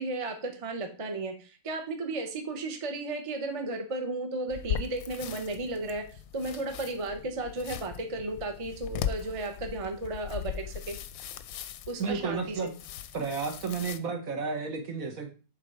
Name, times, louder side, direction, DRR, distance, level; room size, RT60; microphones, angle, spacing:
voice 1, 0.0-11.0 11.9-12.6, right 2 dB, 25° right, 5 dB, 0.8 m, -34 dB
sound 1, 4.5-14.0, left 9 dB, 70° left, 1.0 m, -39 dB
voice 2, 12.0-12.7 13.1-15.3, right 5 dB, 60° right, 4 dB, 1.5 m, -32 dB
7.2 x 3.9 x 4.7 m, 0.35 s
omnidirectional pair, 1.7 m